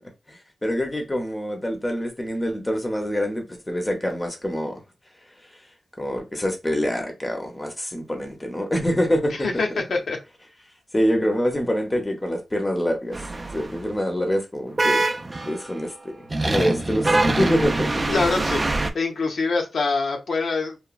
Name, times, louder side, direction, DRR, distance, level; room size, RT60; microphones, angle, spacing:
voice 1, 0.3-4.8 6.0-9.6 10.9-13.3 13.5-15.0 15.5-15.9 16.2-17.9, equal, 15° left, 0.6 m, -25 dB
voice 2, 9.3-10.2 18.1-18.6 18.9-20.8, left 3 dB, 80° left, 0.6 m, -24 dB
sound 1, 13.1-13.8 14.8-15.7 16.3-18.9, right 2 dB, 30° right, 0.3 m, -24 dB
2.9 x 2.1 x 2.3 m
wide cardioid pair, 105°, 0 cm